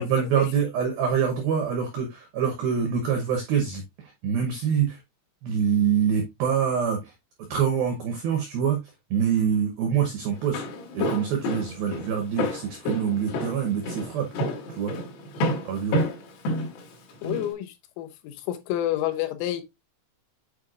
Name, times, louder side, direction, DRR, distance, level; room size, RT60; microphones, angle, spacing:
voice 1, 0.0-5.0 5.4-7.1 7.5-8.8 9.1-10.6 10.9-14.3 14.7-14.9 15.6-16.0, right 7 dB, 90° right, 2.1 m, -25 dB
Walk footsteps, 10.3-17.5, left 1 dB, 65° left, 3.3 m, -29 dB
voice 2, 17.2-19.6, left 13 dB, 85° left, 3.4 m, -29 dB
8.3 x 4.7 x 2.4 m
omnidirectional pair, 5.8 m